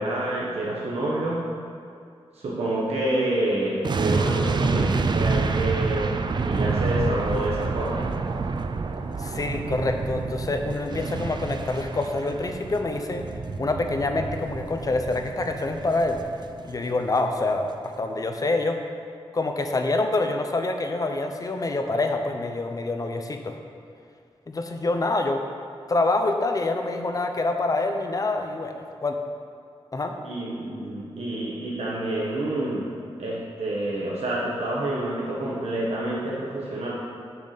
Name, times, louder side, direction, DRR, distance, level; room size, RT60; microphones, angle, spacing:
voice 1, 0.0-1.4 2.3-8.1 30.2-32.9 33.2-36.9, right 1 dB, 85° right, -6 dB, 1.1 m, -28 dB
sound 1, 3.8-17.0 17.3-17.4, right 4 dB, 45° right, 0.4 m, -28 dB
voice 2, 9.2-13.2 13.6-16.2 16.6-18.8 19.3-23.6 24.5-25.4 25.9-29.2 29.9-30.1, left 2 dB, 35° left, 5 dB, 0.6 m, -26 dB
7.0 x 4.1 x 6.6 m, 2.3 s
wide cardioid pair, 115°, 10 cm